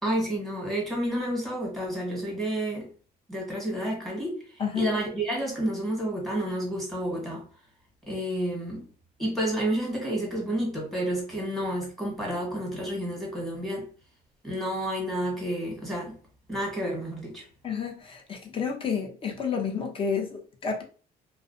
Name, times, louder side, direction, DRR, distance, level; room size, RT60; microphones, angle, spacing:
voice 1, 0.0-2.9 3.3-4.4 4.7-7.5 8.1-8.9 9.2-13.9 14.4-16.2 16.5-17.4, right 1 dB, ahead, 1.3 m, -30 dB
voice 2, 17.6-20.8, left 6 dB, 30° left, 0.7 m, -30 dB
2.4 x 2.1 x 2.6 m
cardioid pair, 110°, 17 cm